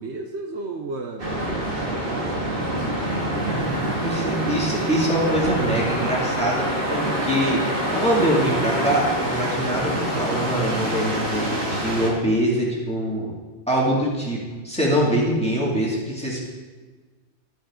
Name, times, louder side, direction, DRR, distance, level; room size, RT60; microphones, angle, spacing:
voice 1, 0.0-4.0, right 3 dB, 65° right, 3 dB, 1.0 m, -35 dB
sound 1, 1.2-12.1, right 1 dB, 45° right, 2.1 m, -26 dB
voice 2, 4.0-7.6 7.9-13.3 13.7-14.4 14.6-16.4, right 1 dB, 5° left, -5 dB, 2.2 m, -23 dB
13.0 x 7.3 x 3.7 m, 1.3 s
omnidirectional pair, 1.3 m